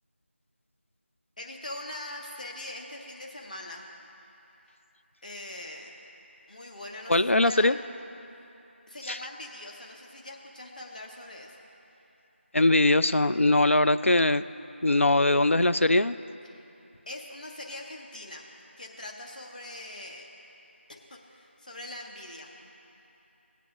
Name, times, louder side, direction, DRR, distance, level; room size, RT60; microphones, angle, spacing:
voice 1, 1.4-3.9 5.2-6.0 6.5-7.2 7.4-7.7 8.9-11.6 16.5-16.6 17.1-18.5 18.8-20.3 21.1-22.7, left 1 dB, 40° left, 0 dB, 1.2 m, -42 dB
voice 2, 7.1-7.8 9.1-9.2 12.5-14.4 14.8-16.2, left 2 dB, 90° left, 13 dB, 0.4 m, -21 dB
18.0 x 8.2 x 2.7 m, 2.9 s
figure-of-eight pair, 170°, 7 cm